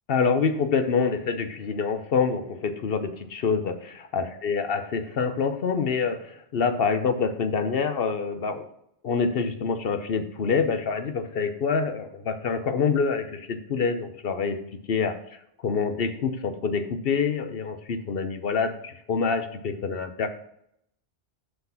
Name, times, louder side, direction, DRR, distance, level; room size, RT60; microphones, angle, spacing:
voice 1, 0.1-8.7 9.0-14.6 14.9-15.1 15.6-20.3, left 5 dB, 60° left, 9 dB, 0.9 m, -26 dB
5.9 x 5.7 x 5.6 m, 0.74 s
omnidirectional pair, 1.2 m